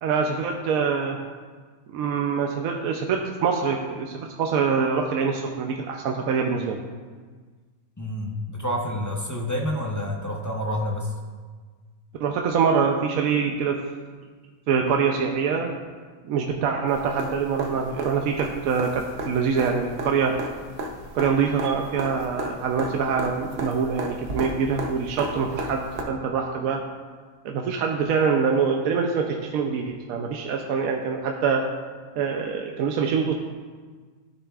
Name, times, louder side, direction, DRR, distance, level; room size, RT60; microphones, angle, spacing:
voice 1, 0.0-1.2 1.9-6.8 12.2-13.8 14.7-15.8 16.3-20.3 21.1-26.8 27.4-31.6 32.2-33.3, right 6 dB, 75° right, 2 dB, 1.0 m, -24 dB
voice 2, 8.0-11.1, left 1 dB, 20° left, -1 dB, 0.5 m, -28 dB
sound 1, 16.9-26.0 28.0-28.1, right 1 dB, 50° right, 1.0 m, -35 dB
12.5 x 6.8 x 2.4 m, 1.5 s
omnidirectional pair, 1.5 m